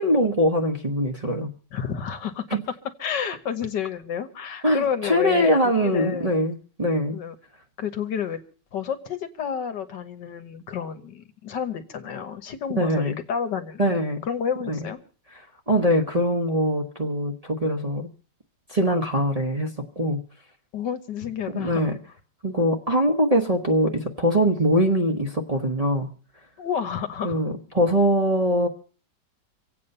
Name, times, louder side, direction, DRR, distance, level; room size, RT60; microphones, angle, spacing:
voice 1, 0.0-1.5 2.5-2.6 4.6-7.2 12.8-13.2 13.8-14.2 14.7-14.9 15.3-18.1 18.7-20.2 21.5-22.0 22.4-26.1 27.2-28.7, equal, 25° right, 0 dB, 1.0 m, -22 dB
voice 2, 1.7-2.4 3.0-6.4 7.1-7.4 7.8-8.4 8.7-13.9 14.3-15.0 20.7-21.9 26.6-27.4, left 7 dB, 80° left, 9 dB, 1.8 m, -30 dB
25.0 x 8.5 x 5.5 m, 0.41 s
omnidirectional pair, 1.9 m